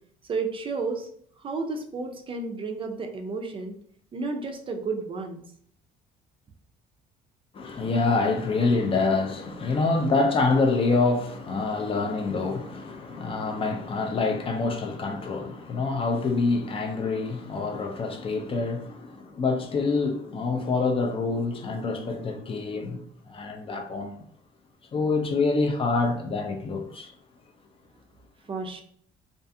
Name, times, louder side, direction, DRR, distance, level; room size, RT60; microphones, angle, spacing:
voice 1, 0.3-1.1 1.4-3.7 4.1-5.4 28.5-28.8, right 4 dB, 30° right, 0.4 m, -32 dB
voice 2, 7.5-24.2 24.9-27.1, left 3 dB, 35° left, 0.4 m, -26 dB
2.4 x 2.4 x 2.6 m
cardioid pair, 110°, 17 cm